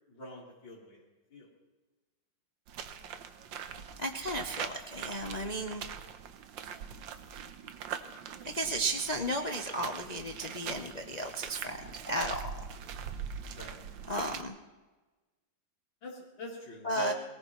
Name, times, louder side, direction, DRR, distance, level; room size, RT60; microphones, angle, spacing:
voice 1, 0.1-1.0 1.3-1.5 13.5-13.8 16.0-17.1, right 2 dB, 60° left, -7 dB, 4.2 m, -43 dB
sound 1, 2.7-14.4, right 7 dB, 65° right, 1.5 m, -43 dB
voice 2, 4.0-5.8 8.5-12.7 14.1-14.5 16.8-17.1, right 1 dB, 80° left, 3 dB, 0.3 m, -34 dB
22.5 x 19.0 x 3.1 m, 1.2 s
omnidirectional pair, 2.4 m